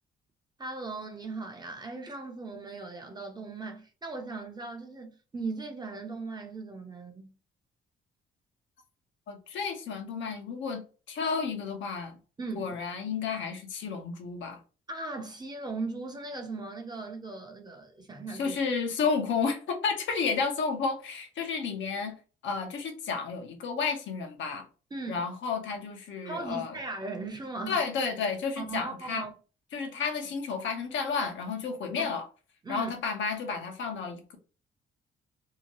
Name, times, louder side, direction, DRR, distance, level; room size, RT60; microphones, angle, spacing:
voice 1, 0.6-7.3 12.4-12.8 14.9-18.6 24.9-25.2 26.2-27.8 28.6-29.3 32.0-32.1 32.6-32.9, right 3 dB, 20° right, 0.6 m, -38 dB
voice 2, 9.3-10.8 11.1-12.2 12.6-14.6 18.4-22.2 22.4-24.6 25.1-26.7 27.7-29.2 29.7-32.2 32.7-34.4, left 5 dB, 70° left, 0.8 m, -31 dB
2.8 x 2.2 x 2.9 m
cardioid pair, 90°, 20 cm